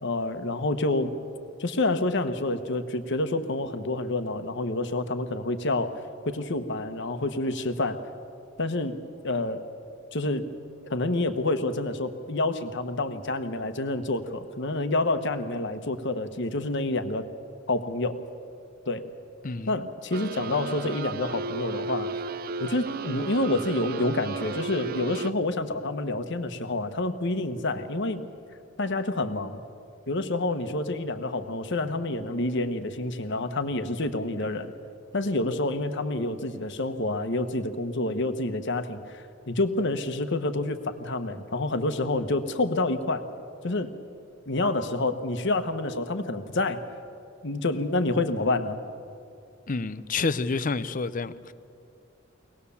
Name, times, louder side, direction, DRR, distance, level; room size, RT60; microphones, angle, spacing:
voice 1, 0.0-1.1 1.6-6.0 6.2-8.0 8.6-9.0 9.2-9.6 10.1-10.5 10.9-17.2 17.7-18.2 18.9-19.1 19.7-22.1 22.6-28.2 28.8-29.6 30.1-34.7 35.1-43.2 43.6-43.9 44.5-46.8 47.4-48.8, left 2 dB, 60° left, 1.2 m, -28 dB
voice 2, 19.4-19.7 49.7-51.5, left 4 dB, 40° left, 0.6 m, -29 dB
sound 1, 20.1-25.3, right 4 dB, 50° right, 0.5 m, -34 dB
24.0 x 18.5 x 7.1 m
head